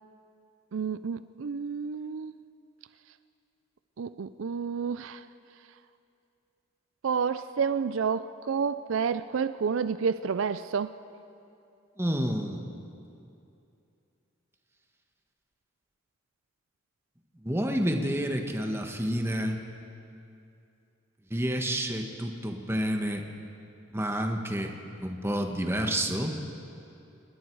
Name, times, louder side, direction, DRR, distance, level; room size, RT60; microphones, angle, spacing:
voice 1, 0.7-2.3 4.0-5.2 7.0-10.9, right 6 dB, 75° right, 14 dB, 0.4 m, -30 dB
voice 2, 12.0-12.9 17.4-19.6 21.3-23.2 23.9-24.7 25.0-26.4, equal, 10° right, 3 dB, 1.4 m, -29 dB
27.5 x 20.5 x 4.7 m, 2.6 s
head